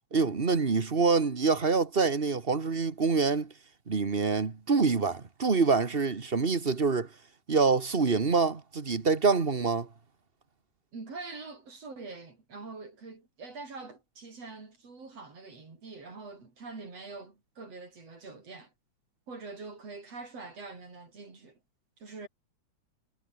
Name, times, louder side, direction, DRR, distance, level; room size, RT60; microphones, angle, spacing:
voice 1, 0.1-3.5 3.9-7.1 7.5-9.9, right 4 dB, 30° right, 1.1 m, -26 dB
voice 2, 10.9-18.7 19.3-21.6 22.0-22.3, right 3 dB, 55° right, 6.0 m, -44 dB
omnidirectional pair, 3.4 m